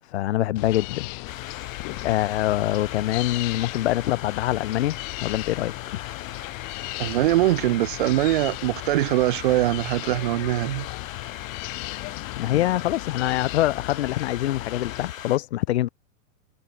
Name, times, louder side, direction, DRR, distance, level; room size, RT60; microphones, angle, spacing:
voice 1, 0.0-1.1 2.0-5.0 5.2-6.0 12.4-15.9, left 14 dB, 55° left, 0.7 m, -24 dB
sound 1, 0.6-15.1, left 40 dB or more, 20° left, 0.9 m, -36 dB
sound 2, 1.3-15.4, left 11 dB, 75° left, 2.9 m, -40 dB
voice 2, 7.0-10.9, right 15 dB, 40° right, 0.8 m, -22 dB
supercardioid pair, 170°, 40 cm